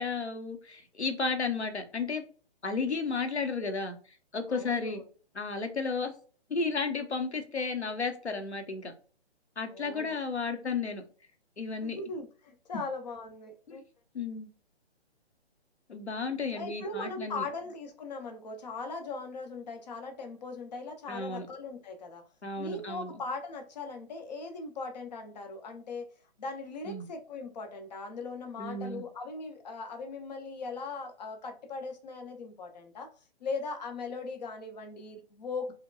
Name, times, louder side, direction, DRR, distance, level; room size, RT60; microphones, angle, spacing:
voice 1, 0.0-2.2 2.6-3.9 4.3-5.0 5.3-6.1 6.5-8.9 9.6-11.0 11.6-12.0 13.7-13.8 14.1-14.5 15.9-17.4 21.1-21.5 22.4-23.1 26.9-27.1 28.6-29.0, left 4 dB, 85° left, 0.9 m, -33 dB
voice 2, 4.5-5.0 9.7-10.2 11.8-13.8 16.5-22.2 22.6-26.1 26.4-33.1 33.4-35.7, left 3 dB, 40° left, 0.8 m, -39 dB
4.8 x 2.2 x 2.3 m
figure-of-eight pair, 135°, 33 cm